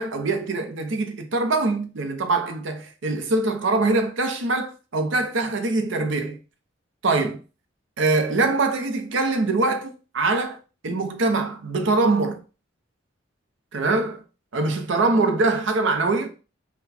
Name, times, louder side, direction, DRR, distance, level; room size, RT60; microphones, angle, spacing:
voice 1, 0.0-6.4 7.0-7.4 8.0-10.6 10.8-12.4 13.7-14.2 14.5-16.3, right 3 dB, 75° right, 0.7 m, -23 dB
4.0 x 2.3 x 4.1 m
head